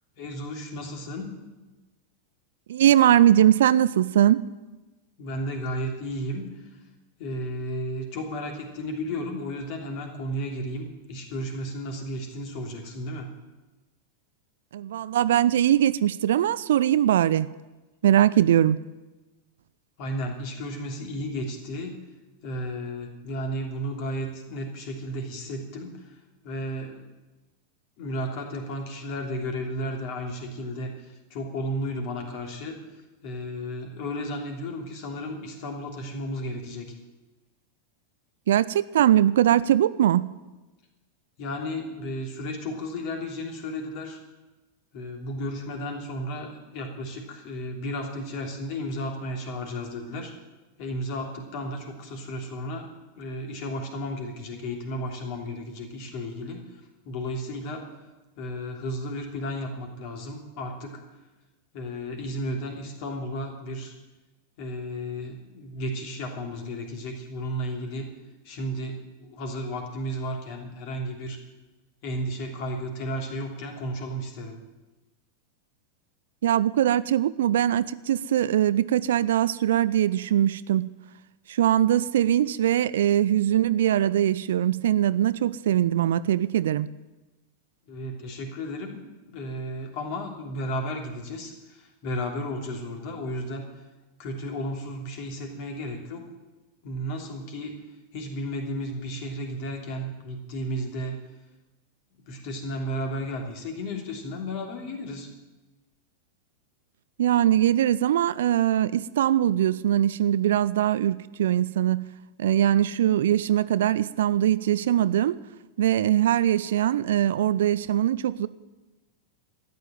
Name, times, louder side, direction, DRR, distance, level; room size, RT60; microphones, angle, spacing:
voice 1, 0.2-1.4 5.2-6.7 7.2-13.3 20.0-22.0 22.4-26.2 26.4-27.1 28.0-32.8 33.2-36.9 41.4-44.2 44.9-50.3 50.8-52.9 53.2-57.9 58.4-61.0 61.7-64.0 64.6-68.1 68.4-71.4 72.0-74.6 87.9-93.7 94.2-96.2 96.8-97.8 98.1-101.2 102.3-105.3, equal, 45° left, 3.1 m, -33 dB
voice 2, 2.7-4.4 14.7-17.5 18.0-18.8 38.5-40.3 76.4-80.9 81.5-86.9 107.2-112.0 112.4-115.4 115.8-118.5, right 11 dB, 60° right, 0.4 m, -21 dB
13.5 x 9.4 x 9.1 m
figure-of-eight pair, 90°, 0 cm